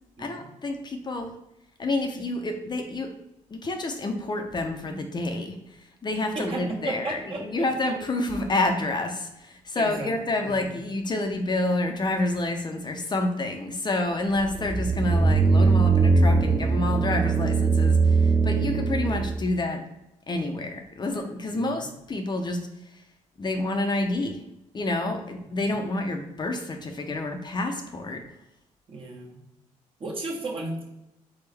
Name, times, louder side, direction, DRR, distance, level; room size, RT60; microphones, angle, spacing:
voice 1, 0.2-1.3 1.8-3.1 3.5-5.6 6.0-19.8 20.3-22.6 23.4-24.4 24.7-28.2, left 2 dB, 35° left, 4 dB, 0.6 m, -28 dB
voice 2, 6.3-7.9 9.8-10.1 10.4-10.6 15.6-15.7 21.5-21.9 28.9-29.4 30.0-30.8, right 2 dB, 45° right, -2 dB, 1.3 m, -34 dB
sound 1, 14.4-19.4, right 4 dB, 20° right, 0.3 m, -21 dB
3.8 x 3.5 x 3.3 m, 0.87 s
cardioid pair, 80°, 13 cm